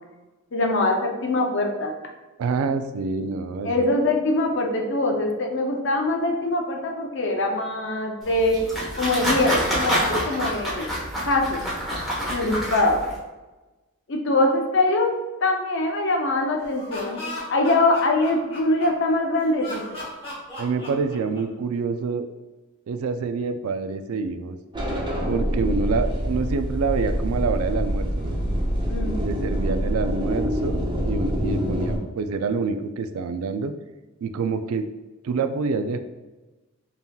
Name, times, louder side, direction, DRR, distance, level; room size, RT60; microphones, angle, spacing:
voice 1, 0.5-1.9 3.6-8.6 9.0-10.9 11.2-11.6 12.3-13.0 14.1-15.1 15.4-19.8 28.9-29.5, left 2 dB, 60° left, 2 dB, 0.6 m, -23 dB
voice 2, 2.4-3.7 20.6-22.3 22.9-24.6 25.3-28.4 29.2-33.7 34.2-34.9 35.2-36.0, right 4 dB, 85° right, 9 dB, 0.3 m, -27 dB
sound 1, 8.2-13.2, equal, ahead, 1.1 m, -27 dB
Laughter, 16.6-19.1 19.6-21.6, left 1 dB, 25° left, 1.2 m, -36 dB
sound 2, 24.7-32.0, equal, 20° right, 0.6 m, -26 dB
5.3 x 2.8 x 2.3 m, 1.1 s
head